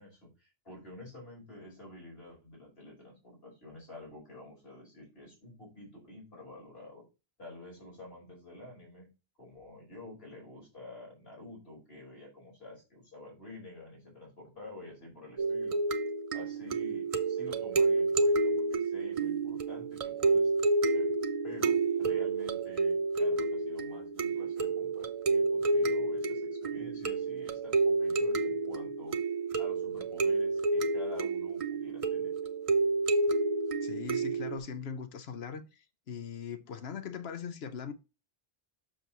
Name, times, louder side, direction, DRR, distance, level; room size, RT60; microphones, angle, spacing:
voice 1, 0.0-7.0 7.4-9.1 9.4-15.8 16.3-20.5 20.9-21.1 21.4-29.2 29.6-32.3, left 2 dB, 70° left, 5.2 m, -49 dB
sound 1, 15.4-34.6, right 3 dB, 40° right, 0.6 m, -29 dB
voice 2, 33.8-35.8 36.1-37.9, left 6 dB, 90° left, 1.0 m, -40 dB
7.4 x 6.8 x 3.0 m
omnidirectional pair, 1.0 m